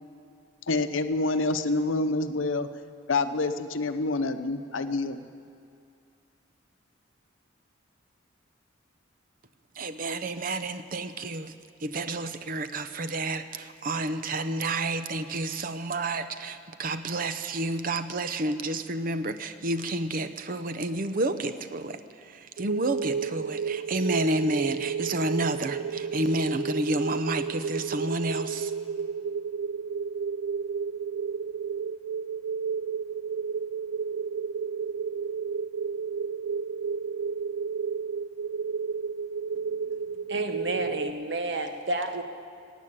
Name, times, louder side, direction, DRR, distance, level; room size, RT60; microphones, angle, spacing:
voice 1, 0.7-2.7 3.1-5.3, left 3 dB, 85° left, 10 dB, 0.7 m, -27 dB
voice 2, 9.8-11.5 11.8-22.0 22.6-28.7, right 2 dB, 45° right, 10 dB, 0.6 m, -30 dB
sound 1, 22.6-41.1, right 6 dB, 80° right, 0.3 m, -32 dB
voice 3, 39.9-42.2, right 2 dB, 60° right, 6 dB, 1.1 m, -31 dB
15.0 x 9.2 x 8.7 m, 2.3 s
head